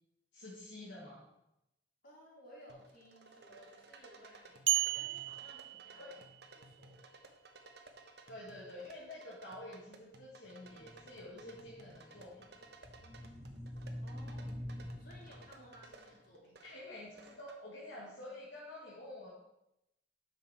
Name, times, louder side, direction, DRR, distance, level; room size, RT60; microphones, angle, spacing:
voice 1, 0.3-1.3 6.0-6.2 8.3-12.5 16.6-19.3, left 1 dB, 80° left, -5 dB, 2.0 m, -49 dB
voice 2, 2.0-6.2 6.5-7.1 14.0-14.5 15.0-16.7, equal, 55° left, -5 dB, 3.9 m, -58 dB
sound 1, 2.7-17.6, right 2 dB, 65° right, 1.1 m, -58 dB
sound 2, 4.7-6.5, right 16 dB, 85° right, 0.4 m, -34 dB
sound 3, 10.6-15.9, equal, 20° right, 3.2 m, -47 dB
9.8 x 6.6 x 4.4 m, 0.85 s
head